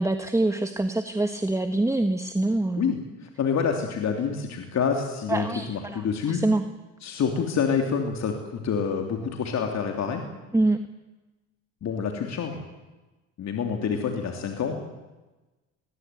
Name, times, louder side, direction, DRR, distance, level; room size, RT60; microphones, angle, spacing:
voice 1, 0.0-2.9 5.3-6.6 10.5-10.8, right 2 dB, 10° right, 8 dB, 1.4 m, -25 dB
voice 2, 3.4-6.4 7.0-10.2 11.8-12.6 13.4-14.7, left 6 dB, 55° left, 3 dB, 3.2 m, -27 dB
20.5 x 19.5 x 9.4 m, 1.1 s
supercardioid pair, 75°, 34 cm